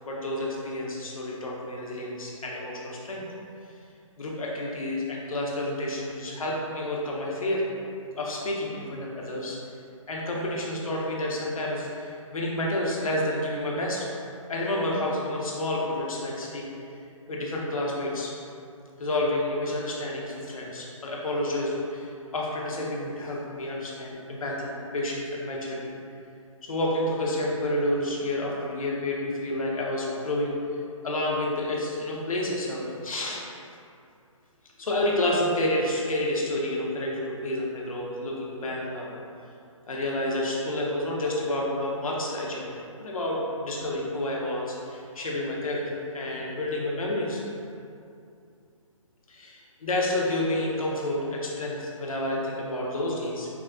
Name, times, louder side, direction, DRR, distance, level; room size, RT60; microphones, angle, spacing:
voice 1, 0.0-3.2 4.2-7.6 8.2-9.6 10.1-14.1 14.5-16.7 17.3-18.3 19.0-25.9 26.6-30.5 31.0-33.4 34.8-39.1 39.9-42.7 43.0-47.4 49.3-53.5, left 1 dB, 85° left, -3 dB, 0.8 m, -29 dB
4.7 x 2.2 x 2.4 m, 2.5 s
hypercardioid pair, 160°, 18 cm